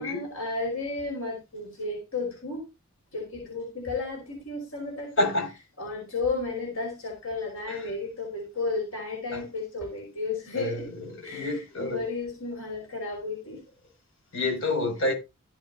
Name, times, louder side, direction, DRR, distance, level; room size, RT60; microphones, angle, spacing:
voice 1, 0.0-2.6 3.1-5.1 5.8-10.9 11.2-13.6, left 3 dB, 85° left, 5.2 m, -33 dB
voice 2, 5.2-5.5 9.3-9.4 10.5-10.8 11.1-12.0 14.3-15.1, left 2 dB, 65° left, 6.7 m, -27 dB
15.0 x 8.7 x 2.8 m
head